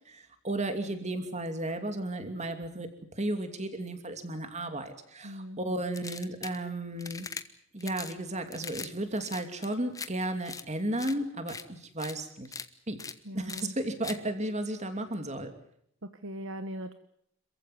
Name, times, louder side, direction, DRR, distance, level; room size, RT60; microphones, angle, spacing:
voice 1, 0.1-2.9 3.2-7.3 7.7-12.5 12.9-13.0 13.3-15.5, right 1 dB, 30° right, 7 dB, 2.7 m, -34 dB
voice 2, 5.2-5.6 13.2-13.7 16.0-16.9, equal, 60° right, 9 dB, 1.2 m, -40 dB
sound 1, 5.9-6.6 7.0-7.4 7.8-8.2 8.5-8.9 9.2-10.1 10.5-10.6 11.0-11.2 11.5-11.6 12.0-12.2 12.5-12.7 13.0-13.1 13.5-13.6 14.0-14.2, left 5 dB, 15° left, 1.0 m, -40 dB
27.0 x 15.0 x 9.3 m, 0.70 s
head